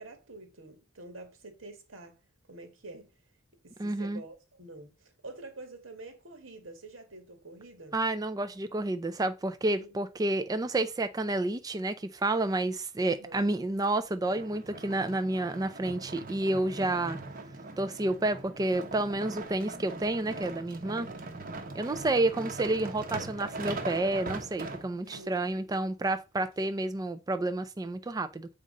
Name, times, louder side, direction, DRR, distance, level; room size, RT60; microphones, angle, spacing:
voice 1, 0.0-2.1 2.5-3.1 3.6-7.9 9.7-9.9 13.1-13.5 25.1-25.8, right 2 dB, 85° right, 2.0 m, -47 dB
voice 2, 3.8-4.2 7.9-17.2 17.8-21.1 21.7-28.5, right 2 dB, 20° right, 0.4 m, -30 dB
sound 1, 14.2-25.2 25.9-26.0, right 3 dB, 45° right, 1.1 m, -41 dB
7.9 x 3.7 x 5.2 m
head